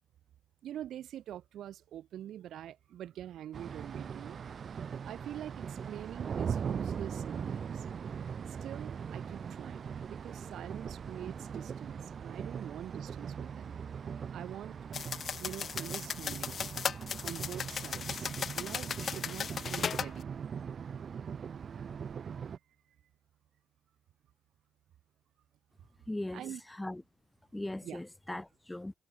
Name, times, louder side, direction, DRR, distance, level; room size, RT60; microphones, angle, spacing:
voice 1, 0.6-4.4 5.0-7.9 8.5-13.7 14.3-14.8 15.4-16.6 17.2-18.3 18.6-20.3 26.3-26.6 27.8-28.0, right 11 dB, 70° right, 1.1 m, -45 dB
sound 1, 3.5-22.6, right 7 dB, 40° right, 0.9 m, -40 dB
sound 2, 14.9-20.1, left 7 dB, 45° left, 1.4 m, -37 dB
voice 2, 26.1-26.4 26.7-27.0 27.5-28.9, left 1 dB, 10° left, 2.5 m, -39 dB
cardioid pair, 135°, 0 cm